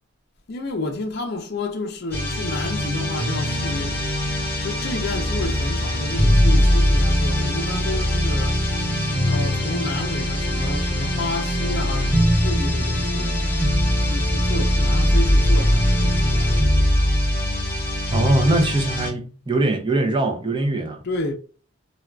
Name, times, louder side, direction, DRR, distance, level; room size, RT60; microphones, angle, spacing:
voice 1, 0.5-4.0 4.6-8.8 9.3-13.4 14.0-16.9 21.0-21.3, left 2 dB, 50° left, 0.5 m, -30 dB
sound 1, 2.1-19.1, equal, 10° left, 0.9 m, -21 dB
voice 2, 18.1-21.0, right 2 dB, 25° right, 0.5 m, -21 dB
3.4 x 2.2 x 2.3 m
head